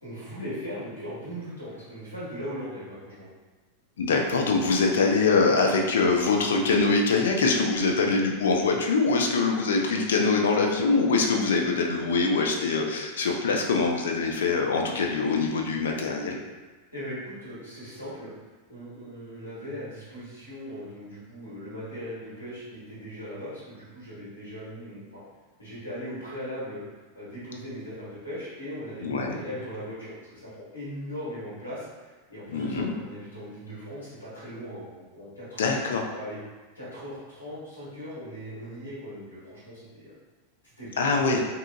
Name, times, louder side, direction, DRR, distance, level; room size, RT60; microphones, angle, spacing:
voice 1, 0.0-3.3 16.9-18.3 18.7-25.2 25.6-26.8 27.1-35.8 36.1-36.4 36.7-40.1 40.8-41.4, equal, 80° left, -10 dB, 1.3 m, -39 dB
voice 2, 4.0-16.4 29.0-29.4 32.5-32.9 35.6-36.0 41.0-41.4, left 4 dB, 60° left, 2 dB, 0.4 m, -23 dB
2.7 x 2.4 x 2.5 m, 1.3 s
figure-of-eight pair, 90°, 0 cm